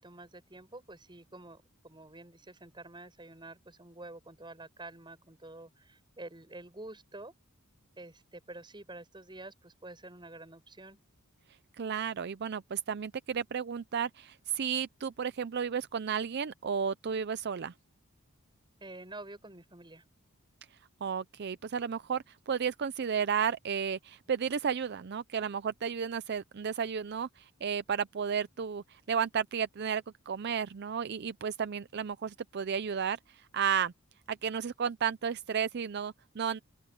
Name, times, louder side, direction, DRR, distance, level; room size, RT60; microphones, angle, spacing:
voice 1, 0.0-7.3 8.0-11.0 18.8-20.0, right 2 dB, 20° right, 7.0 m, -48 dB
voice 2, 11.8-17.7 21.0-33.9 34.3-36.6, right 7 dB, 55° right, 0.5 m, -33 dB
open air
head